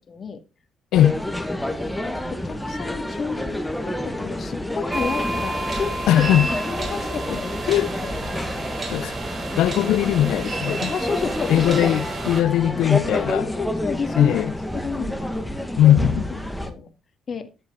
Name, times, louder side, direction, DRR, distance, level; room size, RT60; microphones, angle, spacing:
voice 1, 0.1-0.4 2.0-6.3 6.7-8.1 10.8-11.7 13.3-14.4 14.7-15.4 16.3-16.9 17.3-17.5, left 5 dB, 45° left, 2.0 m, -31 dB
sound 1, 0.9-16.7, left 1 dB, 5° left, 1.7 m, -29 dB
sound 2, 4.9-12.4, right 2 dB, 35° right, 4.3 m, -30 dB
voice 2, 6.1-6.5 7.3-7.4 7.7-7.9 8.9-9.2 9.6-10.9 11.5-13.5 14.2-14.5 15.8-16.3, left 12 dB, 80° left, 0.5 m, -19 dB
11.5 x 10.5 x 3.8 m
cardioid pair, 95°, 0 cm